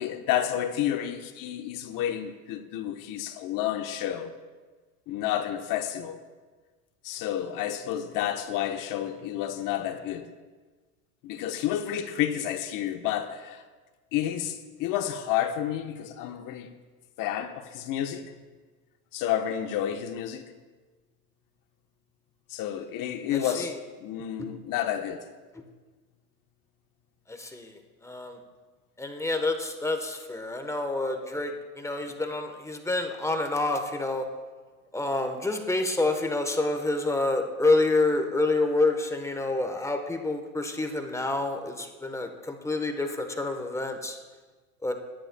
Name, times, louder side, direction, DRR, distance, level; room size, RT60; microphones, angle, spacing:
voice 1, 0.0-4.3 5.1-6.2 7.0-10.3 11.2-13.6 14.1-16.7 17.2-18.2 19.1-20.5 22.5-23.7 24.0-25.2, left 11 dB, 45° left, 1.1 m, -30 dB
voice 2, 23.3-23.7 24.4-24.5 25.5-25.6 27.3-28.4 29.0-34.3 34.9-44.2 44.8-44.9, left 2 dB, 5° left, 1.1 m, -28 dB
22.5 x 9.9 x 2.3 m
supercardioid pair, 110°, 45 cm